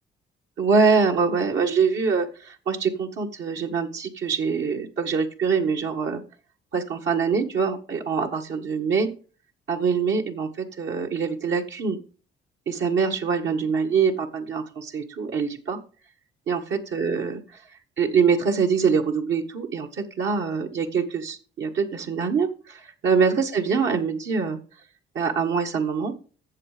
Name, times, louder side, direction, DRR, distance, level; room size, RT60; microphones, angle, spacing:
voice 1, 0.6-6.2 6.7-9.1 9.7-12.0 12.7-15.8 16.5-17.6 18.0-24.6 25.1-26.1, right 5 dB, 65° right, 2 dB, 1.7 m, -24 dB
14.0 x 7.4 x 5.1 m, 0.39 s
cardioid pair, 90°, 20 cm